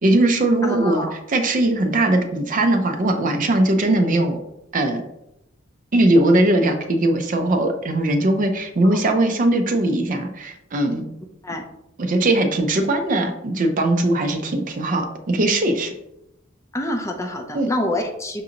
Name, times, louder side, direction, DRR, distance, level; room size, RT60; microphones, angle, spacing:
voice 1, 0.0-4.4 4.7-5.0 5.9-11.0 12.0-15.9 17.5-17.7, right 1 dB, 40° right, 5 dB, 0.5 m, -20 dB
voice 2, 0.6-1.1 8.8-9.0 11.4-11.6 16.7-18.4, left 1 dB, 15° left, 3 dB, 0.4 m, -26 dB
6.0 x 2.5 x 2.8 m, 0.83 s
head